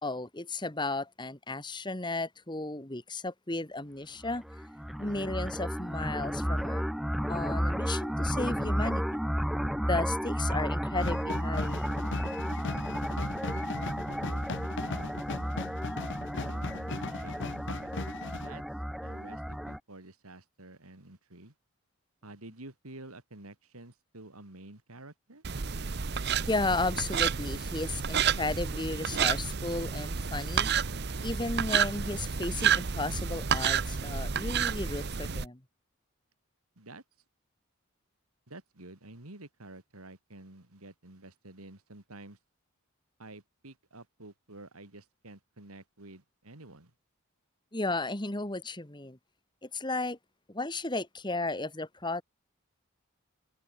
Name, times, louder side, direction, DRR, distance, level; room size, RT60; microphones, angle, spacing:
voice 1, 0.0-4.4 5.0-6.8 7.3-9.2 9.8-11.8 26.5-30.7 31.2-35.6 47.7-49.2 49.6-50.2 50.5-52.2, left 2 dB, 20° left, 1.8 m, -34 dB
sound 1, 4.2-19.8, equal, ahead, 0.6 m, -33 dB
sound 2, 11.0-18.5, left 3 dB, 55° left, 0.9 m, -38 dB
voice 2, 14.1-15.2 16.4-17.9 18.3-18.6 19.0-21.5 22.2-25.4 36.8-37.0 38.5-42.4 43.2-46.9, right 2 dB, 90° right, 3.4 m, -50 dB
sound 3, 25.4-35.5, right 7 dB, 50° right, 0.8 m, -30 dB
head